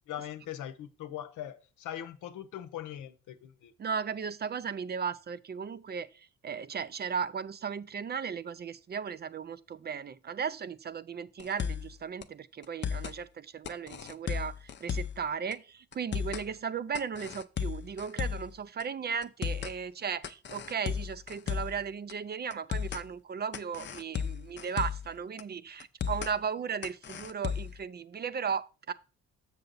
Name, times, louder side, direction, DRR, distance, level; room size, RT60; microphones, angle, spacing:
voice 1, 0.1-3.7 16.5-16.6, left 11 dB, 80° left, 0.8 m, -41 dB
voice 2, 3.8-28.9, right 6 dB, 35° right, 0.4 m, -36 dB
sound 1, 11.4-11.9 12.2-12.3 12.6-13.2 13.7-15.2 15.5-15.6 15.9-16.5 16.9-18.5 18.8-18.9 19.2-19.8 20.2-21.8 22.1-22.2 22.5-23.0 23.5-25.1 25.4-25.5 25.8-26.3 26.8-27.8, left 7 dB, 40° left, 0.6 m, -34 dB
6.9 x 6.7 x 3.9 m
cardioid pair, 90°, 30 cm